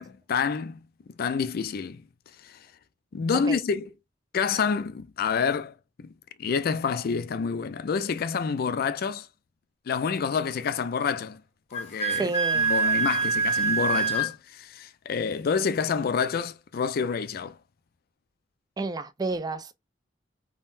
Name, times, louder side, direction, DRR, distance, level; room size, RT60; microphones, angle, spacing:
voice 1, 0.3-0.8 1.2-2.0 2.4-2.5 3.1-3.9 4.3-6.1 6.4-9.3 9.9-11.4 11.7-17.6, left 6 dB, 55° left, 0.4 m, -28 dB
Wind instrument woodwind instrument, 11.7-14.3, right 4 dB, 35° left, 1.4 m, -25 dB
voice 2, 12.1-12.7 18.8-19.7, right 3 dB, 20° right, 0.4 m, -30 dB
3.7 x 2.0 x 2.5 m
head